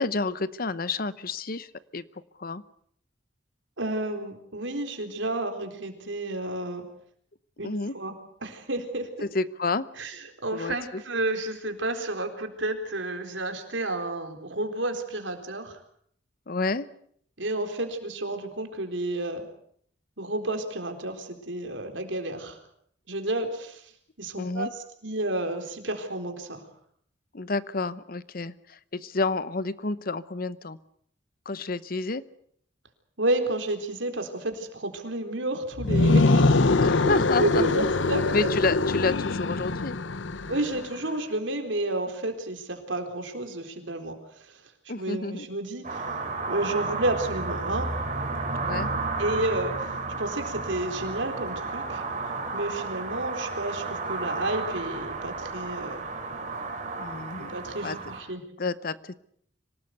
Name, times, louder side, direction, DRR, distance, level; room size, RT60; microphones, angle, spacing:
voice 1, 0.0-2.0 2.4-2.6 7.6-7.9 9.2-9.9 10.5-11.0 16.5-16.9 24.4-24.7 27.3-30.8 31.4-32.2 36.8-37.9 38.3-40.0 44.9-45.5 48.6-48.9 57.0-57.5 57.8-58.0 58.6-59.2, left 3 dB, 50° left, 16 dB, 0.9 m, -30 dB
voice 2, 3.8-6.9 7.6-8.1 8.4-9.1 10.0-10.2 10.4-15.8 17.4-19.4 20.2-22.6 23.1-23.8 24.2-26.6 33.2-36.5 37.0-38.5 40.5-44.2 44.5-44.6 44.9-46.0 46.5-48.0 49.2-52.0 52.5-56.0 57.4-58.4, right 2 dB, 75° right, 6 dB, 4.1 m, -31 dB
sound 1, 35.7-40.8, left 3 dB, 80° left, 0.9 m, -23 dB
sound 2, 45.8-58.2, right 3 dB, 40° right, 4.4 m, -32 dB
25.5 x 18.5 x 8.1 m, 0.65 s
head